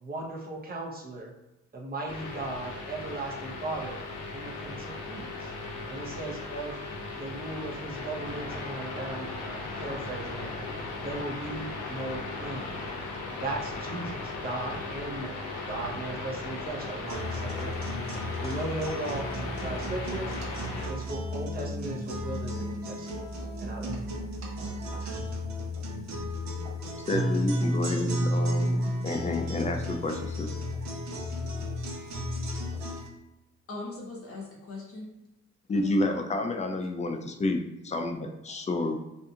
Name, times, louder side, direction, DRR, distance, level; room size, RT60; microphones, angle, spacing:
voice 1, 0.0-1.3 1.7-4.0 4.3-5.5 5.9-6.8 7.1-10.5 11.0-12.7 13.4-17.9 18.3-19.3 19.6-20.3 20.9-23.1 23.6-24.0, right 2 dB, 30° right, -1 dB, 0.8 m, -37 dB
sound 1, 2.1-20.9, left 3 dB, 75° left, 0.6 m, -37 dB
sound 2, 17.1-33.1, equal, 65° right, 0.8 m, -33 dB
voice 2, 27.0-30.5 35.7-39.0, left 2 dB, 25° left, 4 dB, 0.4 m, -30 dB
voice 3, 33.7-35.1 35.7-36.2 38.5-38.6, left 3 dB, 50° left, -3 dB, 0.8 m, -40 dB
2.6 x 2.3 x 2.7 m, 0.94 s
cardioid pair, 90°, 30 cm